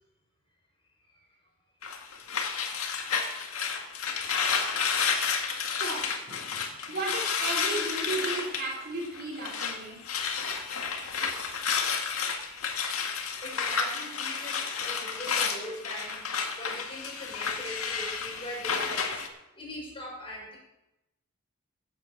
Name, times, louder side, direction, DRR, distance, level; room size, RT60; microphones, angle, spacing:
sound 1, 1.8-9.8 10.0-19.3, left 6 dB, 85° left, 1.9 m, -31 dB
voice 1, 5.8-10.0, right 2 dB, 50° right, -2 dB, 3.8 m, -35 dB
voice 2, 13.4-16.2 16.6-19.2 19.6-20.6, left 1 dB, 25° left, -2 dB, 5.6 m, -41 dB
16.0 x 8.3 x 6.6 m, 0.91 s
head